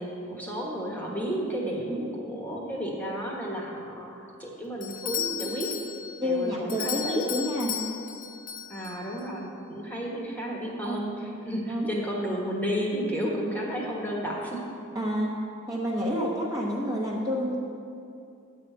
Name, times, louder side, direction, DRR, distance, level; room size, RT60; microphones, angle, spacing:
voice 1, 0.0-5.7 6.2-7.2 8.7-14.6, equal, 10° left, -3 dB, 1.3 m, -32 dB
Doorbell, 4.8-9.3, left 8 dB, 40° left, 0.5 m, -35 dB
voice 2, 6.2-7.7 9.9-10.0 11.7-11.9 14.9-15.3 15.7-17.6, equal, 15° right, -5 dB, 1.0 m, -29 dB
10.0 x 4.9 x 7.8 m, 2.5 s
head